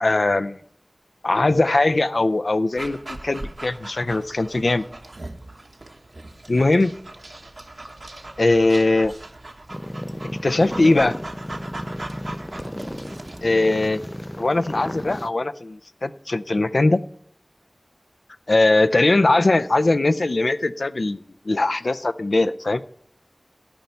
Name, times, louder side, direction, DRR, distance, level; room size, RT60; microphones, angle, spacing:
voice 1, 0.0-0.6 1.2-4.8 6.5-6.9 8.4-9.1 10.4-11.1 13.4-14.0 14.4-17.0 18.5-21.2 21.5-22.8, left 2 dB, 80° left, 12 dB, 0.5 m, -20 dB
Dog, 2.8-13.5, right 2 dB, 75° right, 1.2 m, -39 dB
sound 1, 9.7-15.3, equal, 15° left, 0.4 m, -33 dB
13.0 x 5.5 x 9.4 m, 0.68 s
wide cardioid pair, 50°, 0 cm